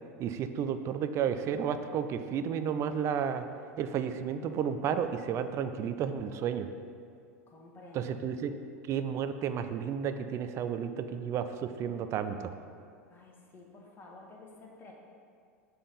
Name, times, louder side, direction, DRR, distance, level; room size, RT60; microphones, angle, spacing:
voice 1, 0.2-3.4 3.8-6.7 7.9-8.6 8.9-12.5, right 8 dB, 35° right, 9 dB, 0.4 m, -32 dB
voice 2, 7.5-8.2 13.1-14.9, left 2 dB, 25° left, -1 dB, 1.2 m, -52 dB
6.8 x 3.4 x 5.6 m, 2.3 s
figure-of-eight pair, 85°, 8 cm